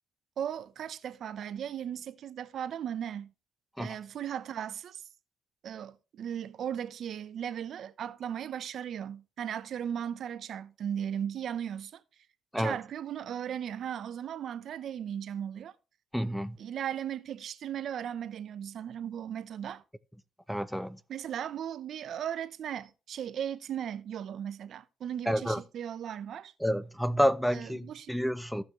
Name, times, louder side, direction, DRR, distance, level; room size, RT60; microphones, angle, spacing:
voice 1, 0.4-3.3 3.8-5.0 5.6-12.0 12.6-15.7 16.6-19.8 21.1-26.5 27.5-28.1, right 9 dB, 65° right, 0.7 m, -37 dB
voice 2, 16.1-16.6 20.5-21.0 25.3-25.6 26.6-28.6, equal, ahead, 0.7 m, -29 dB
15.0 x 5.8 x 3.1 m
cardioid pair, 90°, 0 cm